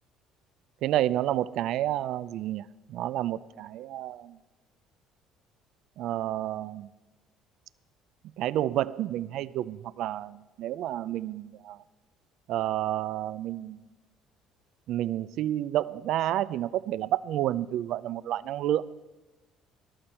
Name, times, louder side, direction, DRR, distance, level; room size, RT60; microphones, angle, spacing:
voice 1, 0.8-2.6 2.9-4.3 6.0-6.9 8.4-11.8 12.5-13.8 14.9-18.9, right 13 dB, 70° right, 17 dB, 0.4 m, -30 dB
14.0 x 12.0 x 4.4 m, 1.1 s
cardioid pair, 100°, 0 cm